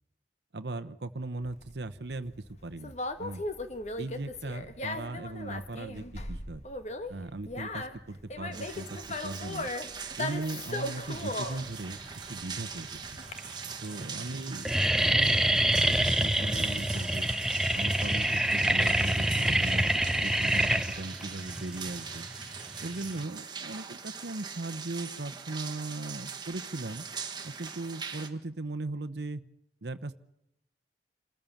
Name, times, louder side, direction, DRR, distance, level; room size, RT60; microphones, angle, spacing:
voice 1, 0.5-2.3 2.6-3.4 4.0-6.6 7.1-9.7 10.2-12.0 12.3-13.1 13.8-17.3 17.7-19.9 20.2-22.3 22.8-27.0 27.4-29.4 29.8-30.2, right 2 dB, 70° right, 11 dB, 0.9 m, -38 dB
Conversation, 1.4-13.3, left 2 dB, 40° left, 1.4 m, -38 dB
sound 1, 8.5-28.3, right 6 dB, 25° right, 1.6 m, -42 dB
sound 2, 12.1-12.6 13.3-13.4 13.7-14.0 14.3-23.2, right 1 dB, 5° right, 0.7 m, -26 dB
27.5 x 14.5 x 7.2 m, 0.80 s
head